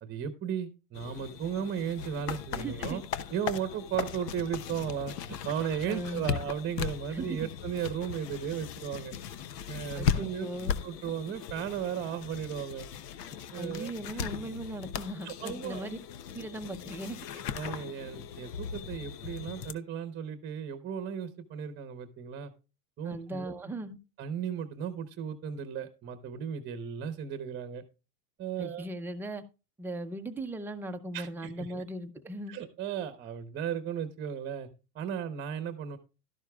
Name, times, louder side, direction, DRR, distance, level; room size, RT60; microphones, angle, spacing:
voice 1, 0.0-3.0 3.3-9.1 9.7-10.5 10.8-12.9 13.5-13.9 15.2-15.9 17.5-22.5 23.0-23.5 24.2-27.8 28.4-28.9 31.1-31.8 32.5-34.7 34.9-36.0, right 8 dB, 20° right, 10 dB, 0.9 m, -35 dB
sound 1, 0.9-19.7, left 8 dB, 75° left, 1.0 m, -38 dB
voice 2, 2.5-3.0 5.8-6.3 7.1-7.5 9.9-10.7 13.6-16.0 16.3-17.2 17.7-17.8 23.0-24.0 28.6-29.4 29.8-32.5, right 1 dB, 5° right, 5 dB, 0.6 m, -38 dB
12.5 x 11.5 x 2.3 m, 0.30 s
hypercardioid pair, 125°, 49 cm